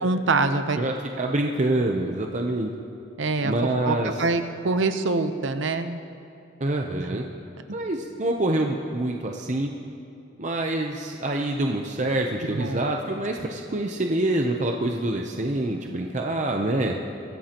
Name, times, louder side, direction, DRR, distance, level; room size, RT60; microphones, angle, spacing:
voice 1, 0.0-0.8 3.2-3.5 3.8-6.0 7.7-7.8 12.4-12.8, right 3 dB, 80° right, 9 dB, 0.8 m, -25 dB
voice 2, 0.8-2.7 3.4-4.1 6.6-7.2 7.7-9.7 10.4-17.0, right 1 dB, 40° right, 2 dB, 0.7 m, -26 dB
23.0 x 15.0 x 3.0 m, 2.6 s
head